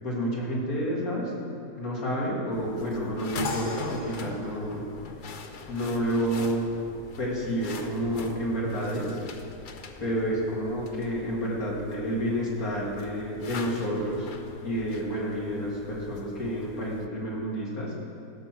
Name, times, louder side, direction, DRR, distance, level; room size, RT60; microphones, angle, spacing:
voice 1, 0.0-1.5 1.8-4.8 5.7-6.7 7.2-9.2 10.0-14.3 14.6-17.9, equal, 60° left, -4 dB, 2.5 m, -29 dB
sound 1, 2.5-17.1, left 4 dB, 80° left, 0.4 m, -43 dB
sound 2, 3.4-5.8, left 3 dB, 40° left, 1.1 m, -40 dB
15.5 x 6.2 x 5.9 m, 2.5 s
omnidirectional pair, 1.8 m